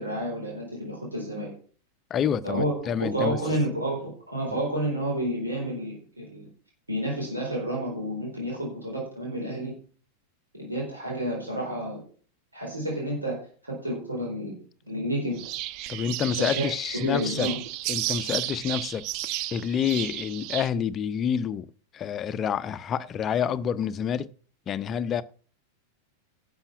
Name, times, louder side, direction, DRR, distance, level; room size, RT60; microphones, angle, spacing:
voice 1, 0.0-1.5 2.4-6.5 6.9-9.7 10.6-12.0 12.5-14.5 14.9-15.4 16.4-17.6, right 1 dB, 80° right, 4.1 m, -30 dB
voice 2, 2.1-3.4 15.9-17.5 17.9-19.1 19.5-24.3 24.7-25.2, left 8 dB, 25° left, 0.6 m, -28 dB
sound 1, 15.4-20.7, right 15 dB, 40° right, 0.5 m, -33 dB
11.5 x 7.1 x 5.8 m
figure-of-eight pair, 90°, 0 cm